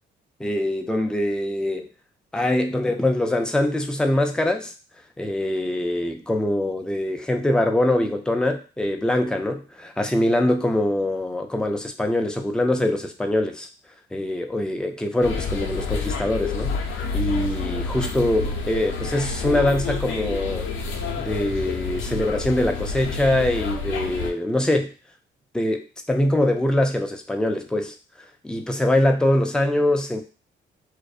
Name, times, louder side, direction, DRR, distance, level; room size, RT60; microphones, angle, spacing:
voice 1, 0.4-1.9 2.3-4.7 5.2-13.7 14.1-20.7 21.2-24.9 25.5-27.9 28.4-30.2, left 1 dB, 5° left, 4 dB, 0.3 m, -23 dB
sound 1, 15.2-24.3, left 4 dB, 75° left, 0.5 m, -29 dB
2.6 x 2.1 x 2.3 m, 0.35 s
cardioid pair, 90°, 20 cm